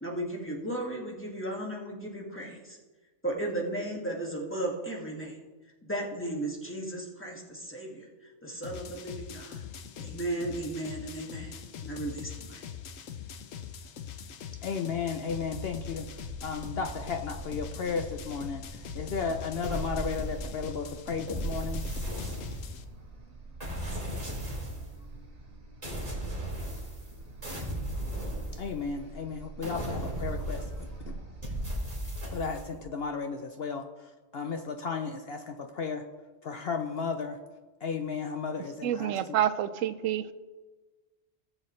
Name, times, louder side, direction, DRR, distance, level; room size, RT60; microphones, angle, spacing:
voice 1, 0.0-2.8 3.2-5.4 5.8-8.1 8.4-9.6 10.0-11.6 11.8-12.6, right 1 dB, 10° left, -2 dB, 2.0 m, -35 dB
sound 1, 8.6-22.8, left 7 dB, 90° left, 1.1 m, -42 dB
voice 2, 14.6-16.1 16.4-21.8 28.0-28.1 28.6-31.2 32.3-36.1 36.4-37.4 37.8-39.4, left 5 dB, 60° left, 5 dB, 0.8 m, -34 dB
sound 2, 15.3-31.8, right 2 dB, 60° right, 1.9 m, -46 dB
sound 3, 19.6-20.7 21.3-22.9 23.6-24.9 25.8-27.1 27.4-29.0 29.6-31.0 31.4-32.7, right 1 dB, 30° right, 2.9 m, -35 dB
voice 3, 38.8-40.3, right 10 dB, 85° right, 12 dB, 1.0 m, -28 dB
18.0 x 7.7 x 3.2 m, 1.3 s
omnidirectional pair, 1.3 m